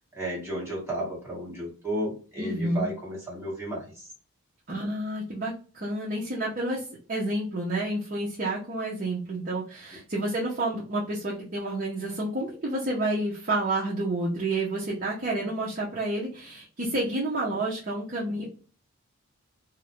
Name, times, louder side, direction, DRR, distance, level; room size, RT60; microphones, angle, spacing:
voice 1, 0.1-4.1, right 1 dB, 10° right, -5 dB, 1.2 m, -33 dB
voice 2, 2.4-2.9 4.7-18.4, right 1 dB, 40° right, -4 dB, 0.6 m, -29 dB
2.5 x 2.0 x 2.9 m, 0.38 s
head